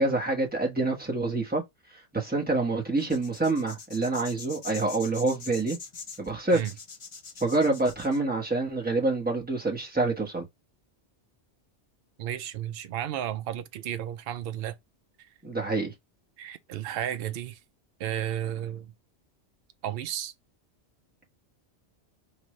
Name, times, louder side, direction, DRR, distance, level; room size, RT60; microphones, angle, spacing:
voice 1, 0.0-1.6 2.1-5.8 6.2-6.6 7.4-10.5 15.4-15.9, right 2 dB, 10° right, 1.1 m, -27 dB
sound 1, 3.0-8.2, left 4 dB, 40° left, 0.5 m, -43 dB
voice 2, 12.2-14.8 15.2-15.3 16.4-17.6 18.0-18.9 19.8-20.3, right 11 dB, 65° right, 0.7 m, -33 dB
5.1 x 2.6 x 3.1 m
omnidirectional pair, 1.1 m